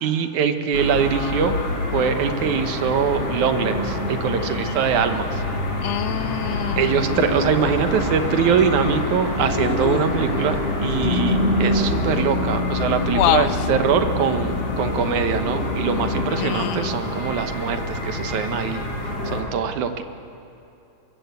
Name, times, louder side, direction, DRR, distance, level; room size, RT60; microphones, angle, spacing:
voice 1, 0.0-1.6 1.9-5.4 6.8-18.9 19.3-20.0, right 7 dB, 75° right, 8 dB, 2.6 m, -23 dB
sound 1, 0.7-19.4, left 1 dB, 55° left, 6.1 m, -27 dB
sound 2, 4.8-16.3, left 4 dB, 25° left, 1.7 m, -29 dB
voice 2, 5.8-7.1 9.4-10.1 13.1-13.5 16.3-17.0, left 12 dB, 85° left, 10 dB, 2.5 m, -25 dB
23.0 x 22.5 x 8.0 m, 2.8 s
omnidirectional pair, 3.5 m